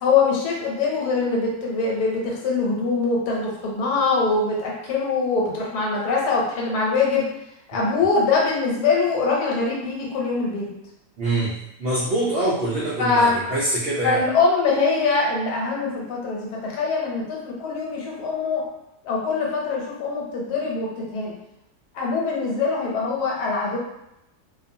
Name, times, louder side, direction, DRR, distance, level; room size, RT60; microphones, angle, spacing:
voice 1, 0.0-7.3 7.7-10.7 13.0-13.3 14.0-18.7 19.0-21.3 21.9-23.8, left 4 dB, 85° left, -2 dB, 1.3 m, -23 dB
voice 2, 11.2-11.5 11.8-14.2, right 1 dB, 80° right, -6 dB, 0.5 m, -24 dB
2.5 x 2.4 x 2.6 m, 0.86 s
omnidirectional pair, 1.7 m